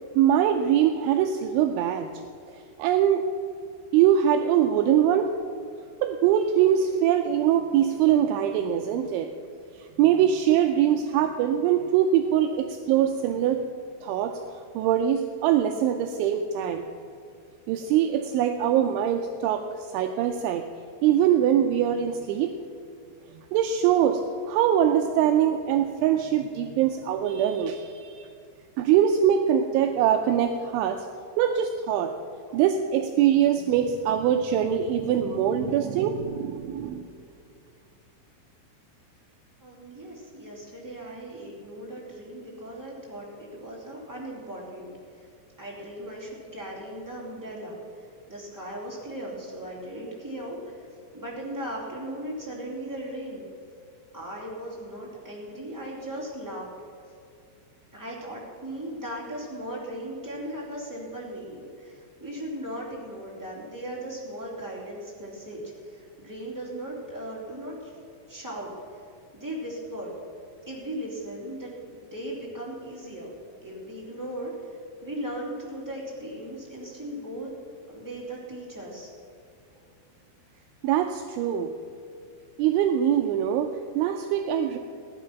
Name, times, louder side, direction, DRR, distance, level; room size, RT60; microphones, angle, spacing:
voice 1, 0.1-2.1 2.8-3.3 3.9-5.4 6.0-9.3 9.8-13.6 14.0-14.4 14.8-16.9 17.7-20.7 21.0-22.5 23.4-28.3 28.8-31.1 31.4-32.1 32.5-37.1 80.8-81.8 82.6-83.7 84.0-84.8, right 10 dB, 80° right, 5 dB, 2.9 m, -23 dB
voice 2, 39.6-45.3 45.6-50.9 51.1-53.4 54.1-56.7 57.9-67.9 68.3-68.7 69.3-70.1 70.6-73.3 73.6-77.5 77.9-79.1, right 1 dB, 5° right, -5 dB, 1.6 m, -37 dB
16.5 x 10.0 x 5.8 m, 2.4 s
omnidirectional pair, 5.8 m